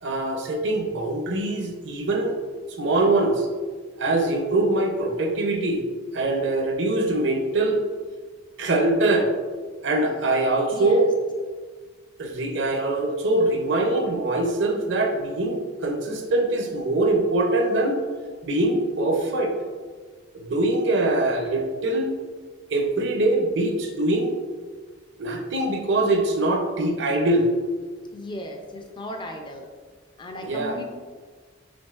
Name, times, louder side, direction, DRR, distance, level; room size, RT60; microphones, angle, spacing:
voice 1, 0.0-2.4 2.8-3.5 4.0-5.9 6.1-7.8 8.6-9.3 9.8-11.1 12.2-18.0 18.4-19.5 20.3-22.1 22.7-24.3 25.2-27.5 30.4-30.8, right 2 dB, 65° right, 3 dB, 0.6 m, -23 dB
voice 2, 10.7-11.1 28.1-29.7 30.2-30.8, equal, 25° left, 3 dB, 0.5 m, -36 dB
5.1 x 3.5 x 2.4 m, 1.5 s
head